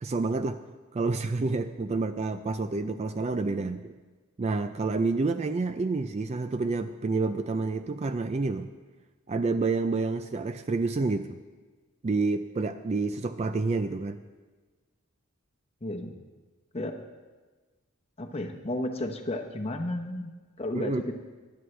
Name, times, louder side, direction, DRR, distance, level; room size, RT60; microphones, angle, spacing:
voice 1, 0.0-0.6 0.9-3.9 4.4-8.7 9.3-11.4 12.0-14.2 20.7-21.0, right 3 dB, 30° right, 10 dB, 0.3 m, -28 dB
voice 2, 15.8-16.1 16.7-16.9 18.2-21.1, left 1 dB, 25° left, 3 dB, 0.9 m, -33 dB
18.5 x 11.0 x 3.3 m, 1.3 s
head